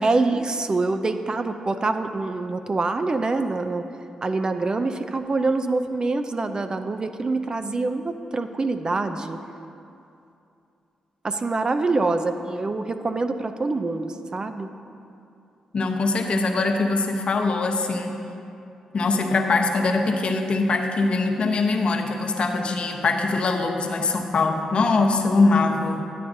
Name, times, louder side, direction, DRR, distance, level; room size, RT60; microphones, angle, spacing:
voice 1, 0.0-3.9 4.2-9.4 11.2-14.7, right 3 dB, 35° right, 8 dB, 0.4 m, -25 dB
voice 2, 15.7-18.2 18.9-26.0, left 3 dB, 55° left, 3 dB, 0.8 m, -22 dB
10.5 x 8.4 x 2.6 m, 2.6 s
supercardioid pair, 45°, 2 cm